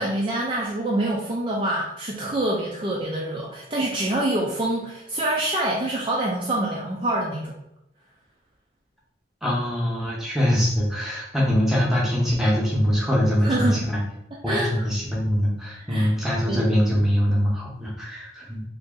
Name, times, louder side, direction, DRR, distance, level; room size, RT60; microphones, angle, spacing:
voice 1, 0.0-7.5 13.4-13.8 14.5-14.7 15.9-16.1 16.4-16.7, right 1 dB, 25° right, -3 dB, 0.4 m, -26 dB
voice 2, 9.4-14.0 14.4-18.6, equal, ahead, -4 dB, 0.8 m, -23 dB
2.9 x 2.7 x 3.7 m, 0.81 s
head